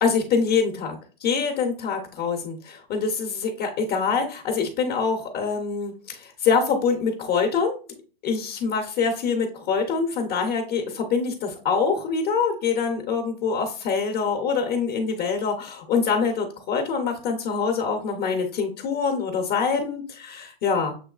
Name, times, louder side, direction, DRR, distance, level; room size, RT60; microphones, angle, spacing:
voice 1, 0.0-7.8 8.2-20.9, left 5 dB, 25° left, 3 dB, 0.6 m, -25 dB
6.6 x 3.0 x 2.3 m, 0.38 s
supercardioid pair, 165°, 29 cm